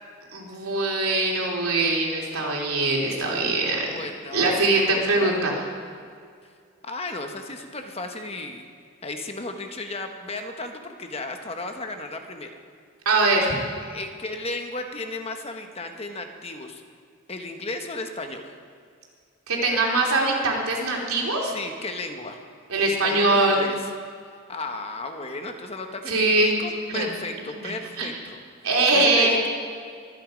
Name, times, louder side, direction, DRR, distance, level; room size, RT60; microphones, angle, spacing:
voice 1, 0.3-3.9 4.3-5.6 13.0-13.5 19.5-21.5 22.7-23.6 26.1-26.5 26.9-27.1 27.6-28.1 28.6-29.4, right 2 dB, 85° right, -1 dB, 3.2 m, -22 dB
voice 2, 3.9-5.4 6.8-8.7 9.0-12.5 13.8-16.8 17.3-18.5 21.4-22.4 22.8-23.9 24.5-28.4 28.9-29.5, left 2 dB, 30° left, 5 dB, 1.0 m, -34 dB
23.5 x 9.4 x 5.1 m, 2.2 s
head